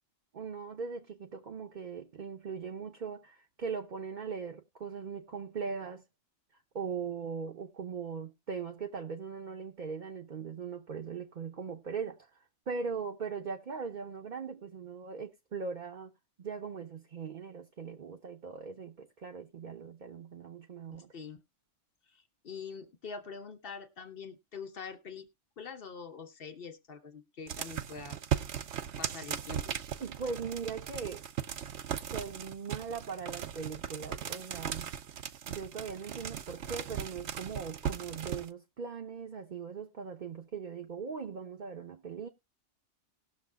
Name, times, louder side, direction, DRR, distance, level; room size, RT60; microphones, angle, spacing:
voice 1, 0.3-6.0 6.7-12.3 12.7-16.1 16.4-21.1 30.0-31.2 32.1-34.9 35.5-42.3, right 5 dB, 45° right, 0.8 m, -40 dB
voice 2, 22.1-25.3 25.6-28.2 29.0-29.8, left 5 dB, 50° left, 1.3 m, -44 dB
sound 1, 27.5-38.5, right 9 dB, 70° right, 1.0 m, -38 dB
19.0 x 6.4 x 2.3 m
omnidirectional pair, 1.2 m